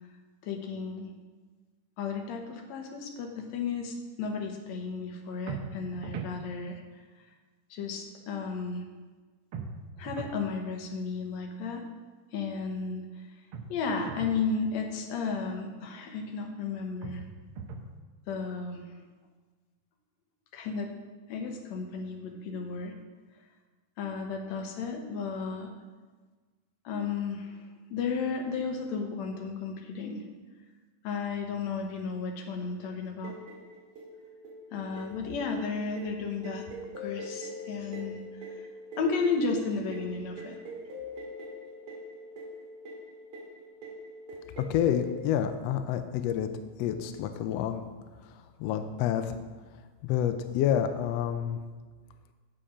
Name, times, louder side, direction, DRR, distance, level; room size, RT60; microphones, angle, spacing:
voice 1, 0.4-1.1 2.0-6.8 7.7-8.9 10.0-11.8 12.3-13.0 13.7-17.2 18.3-18.9 20.5-20.9 21.3-23.0 24.0-25.7 26.9-27.6 27.9-30.3 31.0-33.3 34.7-36.7 37.0-38.2 39.0-40.6, left 4 dB, 65° left, 3 dB, 2.1 m, -33 dB
sound 1, 5.5-6.4 9.5-10.4 13.5-14.4 17.0-17.9, right 5 dB, 85° right, 1.2 m, -40 dB
sound 2, 33.2-45.6, left 1 dB, 50° right, 2.7 m, -43 dB
voice 2, 44.7-46.5 46.8-47.8 48.3-49.4 50.0-51.6, left 10 dB, 85° left, 8 dB, 1.4 m, -28 dB
8.4 x 7.8 x 5.0 m, 1.4 s
omnidirectional pair, 3.6 m